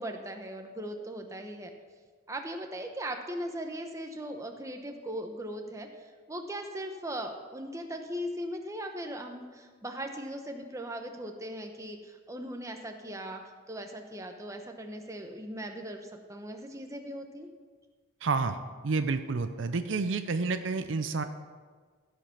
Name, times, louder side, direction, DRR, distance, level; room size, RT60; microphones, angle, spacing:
voice 1, 0.0-1.7 2.3-5.9 6.3-13.4 13.7-17.5, right 1 dB, 15° right, 4 dB, 0.8 m, -39 dB
voice 2, 18.2-18.6 18.8-21.2, right 4 dB, 65° right, 9 dB, 0.5 m, -29 dB
15.5 x 5.2 x 5.8 m, 1.5 s
head